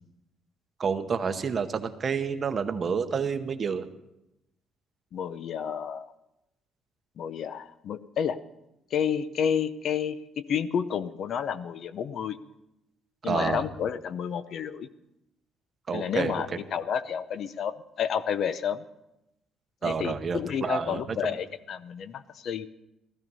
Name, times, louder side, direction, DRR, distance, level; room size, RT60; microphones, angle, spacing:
voice 1, 0.8-3.9 13.2-13.6 15.9-16.4 19.8-21.2, right 6 dB, 25° right, 8 dB, 0.9 m, -29 dB
voice 2, 5.1-6.1 7.2-8.4 8.9-12.4 13.2-14.9 15.9-18.8 19.8-22.7, left 8 dB, 45° left, 14 dB, 0.6 m, -30 dB
16.0 x 14.0 x 5.5 m, 0.89 s
cardioid pair, 175°, 0 cm